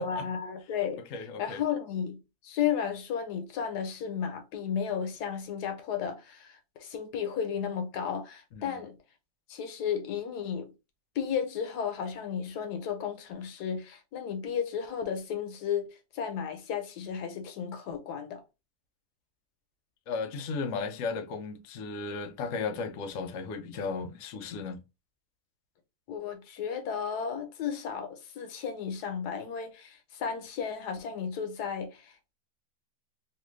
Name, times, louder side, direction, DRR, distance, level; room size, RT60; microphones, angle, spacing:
voice 1, 0.0-1.0 1.4-9.0 9.5-10.7 11.1-15.9 16.1-18.4 26.1-32.3, left 7 dB, 90° left, 1.3 m, -33 dB
voice 2, 1.1-1.6 8.6-8.8 20.1-24.8, left 4 dB, 65° left, 0.8 m, -35 dB
3.1 x 2.4 x 3.0 m
omnidirectional pair, 1.7 m